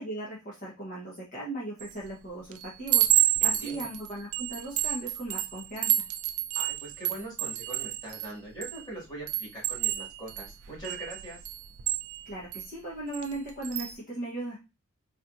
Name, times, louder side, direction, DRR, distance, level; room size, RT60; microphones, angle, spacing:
voice 1, 0.0-6.0 12.2-14.6, right 1 dB, 35° left, -6 dB, 1.1 m, -38 dB
Chime, 1.8-2.1 2.5-8.8 9.3-12.7 13.1-13.3 13.6-13.9, right 13 dB, 70° right, 0.4 m, -29 dB
voice 2, 3.4-3.9 6.5-11.4, right 1 dB, 20° left, -4 dB, 2.0 m, -42 dB
4.1 x 3.0 x 2.6 m, 0.26 s
head